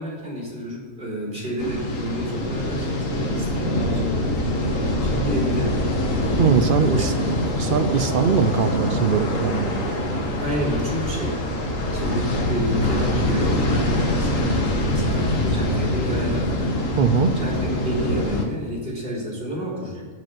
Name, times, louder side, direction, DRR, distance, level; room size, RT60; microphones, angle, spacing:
voice 1, 0.0-4.4 4.7-5.8 6.5-7.7 10.4-11.4 11.9-16.8 17.4-20.1, equal, 35° right, -4 dB, 3.7 m, -30 dB
sound 1, 1.6-18.4, left 1 dB, 70° left, 1.8 m, -24 dB
voice 2, 6.4-7.1 7.6-9.7 17.0-17.3, right 7 dB, 70° right, 10 dB, 0.5 m, -21 dB
7.8 x 7.7 x 7.3 m, 1.4 s
omnidirectional pair, 1.4 m